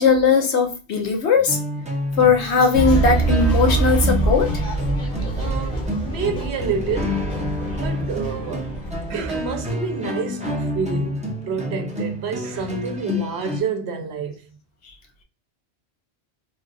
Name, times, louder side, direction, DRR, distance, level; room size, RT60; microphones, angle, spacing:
voice 1, 0.0-1.6 2.2-4.5, left 5 dB, 80° left, 1.1 m, -18 dB
sound 1, 1.3-13.6, left 1 dB, 10° right, 0.5 m, -29 dB
sound 2, 2.7-9.7, right 3 dB, 55° left, 1.1 m, -24 dB
voice 2, 5.3-7.4 7.7-8.7 9.1-14.5, right 5 dB, 70° right, 0.9 m, -28 dB
3.3 x 2.4 x 2.5 m
omnidirectional pair, 1.1 m